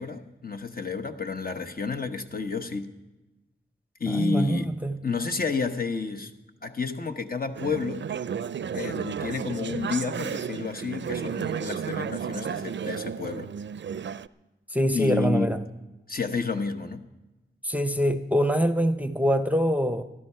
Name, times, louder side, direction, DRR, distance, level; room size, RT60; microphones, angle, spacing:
voice 1, 0.0-2.9 4.0-4.7 5.0-6.3 6.6-8.1 8.7-13.5 14.9-15.6 16.1-17.0, left 4 dB, 50° left, 1.0 m, -30 dB
voice 2, 4.1-5.0 14.7-15.6 17.6-20.0, equal, 10° right, 0.7 m, -24 dB
Conversation / Chatter, 7.6-14.3, right 7 dB, 70° right, 0.4 m, -33 dB
15.5 x 12.5 x 5.6 m
wide cardioid pair, 100°, 19 cm